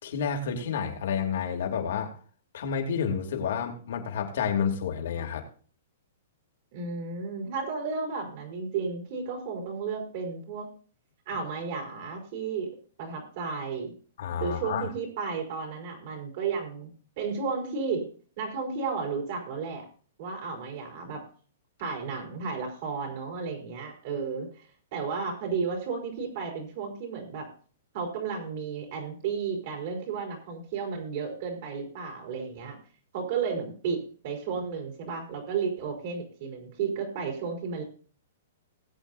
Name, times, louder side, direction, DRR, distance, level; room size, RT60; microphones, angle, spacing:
voice 1, 0.0-2.1 2.5-5.4 14.2-14.9, left 7 dB, 65° left, 2 dB, 2.9 m, -30 dB
voice 2, 6.7-10.7 11.3-12.7 13.0-13.9 14.4-16.9 17.2-18.0 18.4-19.8 20.2-21.2 21.8-24.5 24.9-27.5 27.9-32.8 33.1-37.8, right 5 dB, 50° right, 1 dB, 4.3 m, -33 dB
20.0 x 8.5 x 2.7 m, 0.41 s
hypercardioid pair, 155°, 0 cm